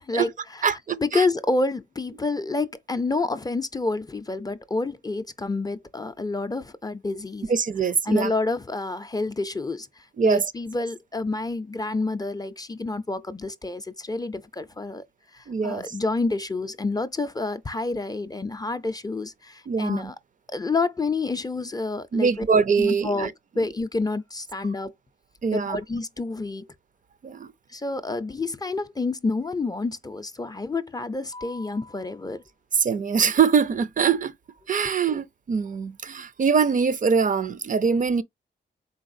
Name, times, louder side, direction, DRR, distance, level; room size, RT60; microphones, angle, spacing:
voice 1, 0.1-7.5 8.1-15.0 15.3-20.2 20.5-22.3 22.8-24.9 25.5-26.7 27.7-32.4, left 3 dB, 20° left, 0.4 m, -28 dB
voice 2, 0.6-1.3 7.5-8.3 10.2-10.5 15.5-15.9 19.7-20.1 22.1-23.3 25.4-25.8 27.2-27.5 32.7-34.3 34.7-38.2, right 6 dB, 45° right, 0.4 m, -23 dB
4.2 x 3.9 x 2.5 m
wide cardioid pair, 115°, 19 cm